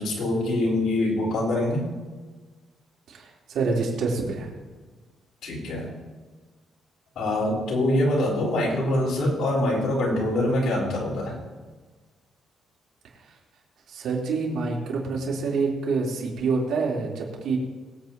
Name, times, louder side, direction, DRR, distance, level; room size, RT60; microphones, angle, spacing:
voice 1, 0.0-1.8 5.4-5.9 7.1-11.4, left 1 dB, 65° left, -3 dB, 4.6 m, -24 dB
voice 2, 3.1-4.5 13.9-17.6, right 4 dB, 70° right, -3 dB, 3.8 m, -27 dB
22.5 x 8.6 x 3.0 m, 1.3 s
cardioid pair, 135°, 0 cm